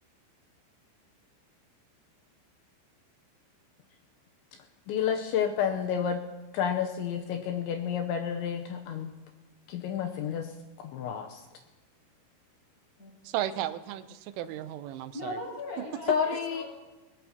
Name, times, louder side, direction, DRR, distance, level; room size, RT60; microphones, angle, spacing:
voice 1, 4.9-6.2 6.5-9.1 9.7-10.5 10.9-11.4 16.1-16.6, left 8 dB, 80° left, 3 dB, 3.0 m, -30 dB
voice 2, 13.3-15.4, right 12 dB, 85° right, 12 dB, 3.2 m, -34 dB
voice 3, 15.1-16.6, left 1 dB, 40° left, -4 dB, 7.2 m, -39 dB
21.5 x 19.0 x 2.9 m, 1.1 s
omnidirectional pair, 5.5 m